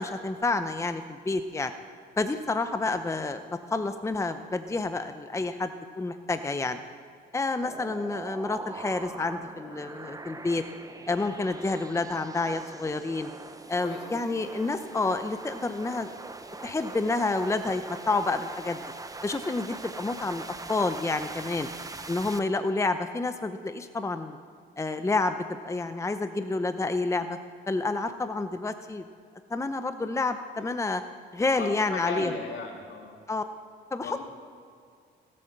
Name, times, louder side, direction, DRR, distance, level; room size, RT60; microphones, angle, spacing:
voice 1, 0.0-1.7 2.2-5.7 6.0-6.8 7.3-10.6 11.1-13.3 13.7-16.1 16.6-18.8 19.2-21.7 22.1-24.4 24.8-27.4 27.7-29.0 29.5-31.0 31.3-32.3 33.3-33.4 33.9-34.2, left 3 dB, 15° left, 9 dB, 0.7 m, -29 dB
sound 1, 7.6-22.4, right 3 dB, 15° right, 0.9 m, -42 dB
voice 2, 13.8-14.5 31.5-33.2 34.0-34.2, left 4 dB, 70° left, 1 dB, 2.8 m, -37 dB
17.0 x 8.6 x 6.8 m, 2.3 s
cardioid pair, 90°, 20 cm